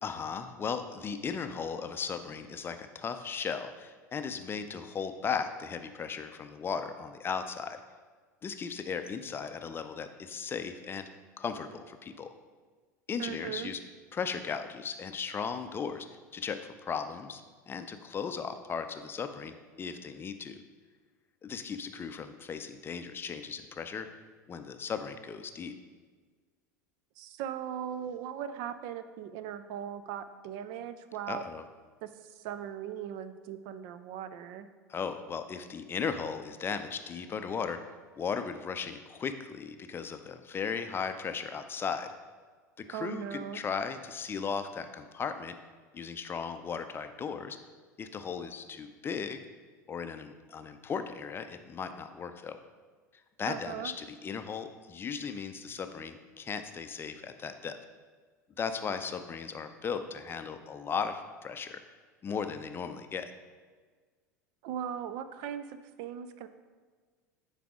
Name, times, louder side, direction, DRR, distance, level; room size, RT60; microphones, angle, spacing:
voice 1, 0.0-7.8 8.4-11.1 11.4-12.3 13.1-13.8 14.1-16.1 16.3-17.4 17.7-20.6 21.4-24.1 24.5-25.7 31.3-31.6 34.9-37.8 38.2-42.1 42.8-45.6 45.9-47.6 48.0-49.4 49.9-52.6 53.4-57.8 58.6-61.8 62.2-63.3, left 6 dB, 25° left, 8 dB, 0.5 m, -36 dB
voice 2, 13.2-13.7 27.2-31.5 32.0-34.7 42.9-43.6 53.5-53.9 64.6-66.5, right 9 dB, 50° right, 12 dB, 0.4 m, -39 dB
9.3 x 4.1 x 3.6 m, 1.5 s
figure-of-eight pair, 75°, 9 cm